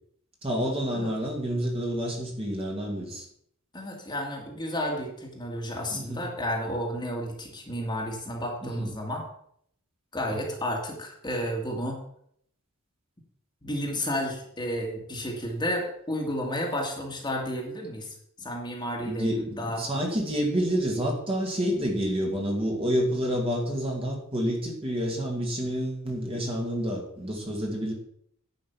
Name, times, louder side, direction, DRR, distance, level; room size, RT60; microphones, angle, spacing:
voice 1, 0.4-3.3 5.9-6.2 8.6-8.9 19.0-27.9, equal, 25° right, 0 dB, 2.3 m, -29 dB
voice 2, 3.7-9.3 10.1-12.0 13.6-19.8, equal, 20° left, 0 dB, 2.1 m, -32 dB
10.5 x 5.7 x 7.2 m, 0.68 s
head